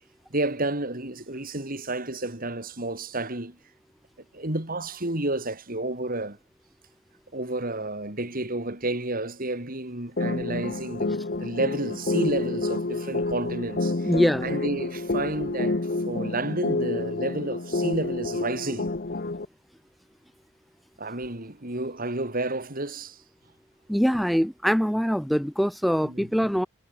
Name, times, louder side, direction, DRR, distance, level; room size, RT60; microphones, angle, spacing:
voice 1, 0.3-3.6 4.3-6.4 7.3-14.1 14.4-18.9 21.0-23.2 26.0-26.3, right 2 dB, 45° right, 4.7 m, -31 dB
sound 1, 10.2-19.5, left 2 dB, 50° left, 1.0 m, -29 dB
voice 2, 14.0-14.5 23.9-26.7, equal, ahead, 2.0 m, -23 dB
head